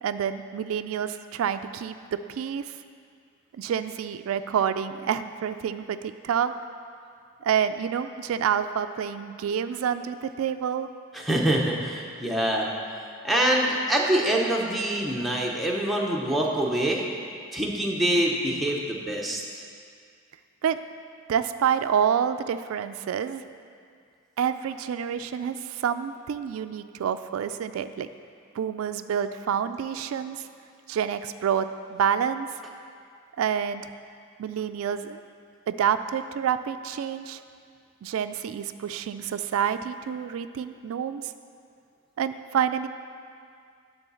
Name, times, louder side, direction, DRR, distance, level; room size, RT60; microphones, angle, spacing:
voice 1, 0.0-2.7 3.6-6.5 7.4-10.9 20.6-20.8 21.3-23.4 24.4-28.1 28.5-30.5 30.9-32.5 33.4-33.9 34.4-35.2 35.7-37.4 38.0-41.3 42.2-42.9, right 8 dB, 85° right, 10 dB, 0.3 m, -28 dB
voice 2, 11.1-12.7 13.2-17.1 17.5-19.4, right 1 dB, ahead, -3 dB, 0.7 m, -25 dB
9.9 x 4.0 x 6.9 m, 2.2 s
head